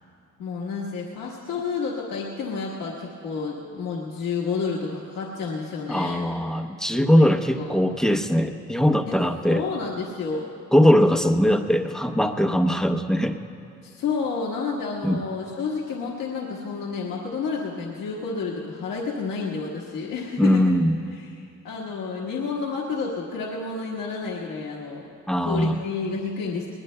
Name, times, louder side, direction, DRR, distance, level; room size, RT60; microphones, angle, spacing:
voice 1, 0.4-6.3 7.1-7.3 7.6-7.7 9.1-9.2 9.5-10.5 13.8-20.6 21.2-25.0 25.4-26.7, left 4 dB, 90° left, -4 dB, 1.5 m, -30 dB
voice 2, 5.9-9.6 10.7-13.4 15.0-15.2 20.4-21.0 25.3-25.8, equal, ahead, 6 dB, 0.7 m, -20 dB
21.0 x 20.5 x 2.2 m, 2.5 s
cardioid pair, 90°, 30 cm